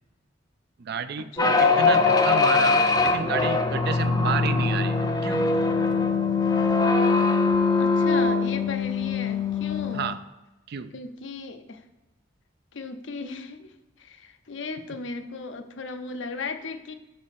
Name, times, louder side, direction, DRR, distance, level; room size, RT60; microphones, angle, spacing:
voice 1, 0.8-5.5 9.9-10.2 10.7-10.9, right 6 dB, 55° right, 11 dB, 0.4 m, -30 dB
voice 2, 1.4-1.7 7.8-10.0 10.9-11.8 12.7-16.9, left 4 dB, 65° left, 8 dB, 0.6 m, -36 dB
sound 1, 1.4-10.1, left 4 dB, 20° left, 0.5 m, -22 dB
sound 2, 4.0-8.3, right 2 dB, 85° left, 1.0 m, -40 dB
6.2 x 3.9 x 5.6 m, 1.0 s
head